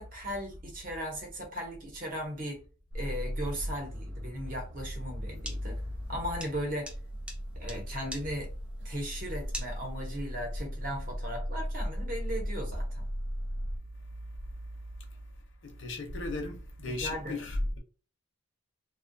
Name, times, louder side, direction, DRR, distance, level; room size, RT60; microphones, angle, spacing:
voice 1, 0.0-2.6 2.9-5.8 6.1-6.9 7.6-8.5 8.8-13.0 16.9-17.4, equal, 45° right, 0.8 m, -37 dB
sound 1, 2.9-13.8, equal, 75° right, 0.6 m, -38 dB
sound 2, 5.3-10.3, equal, 5° right, 0.4 m, -44 dB
voice 2, 15.6-17.8, left 2 dB, 70° left, 0.7 m, -35 dB
2.5 x 2.2 x 2.6 m
head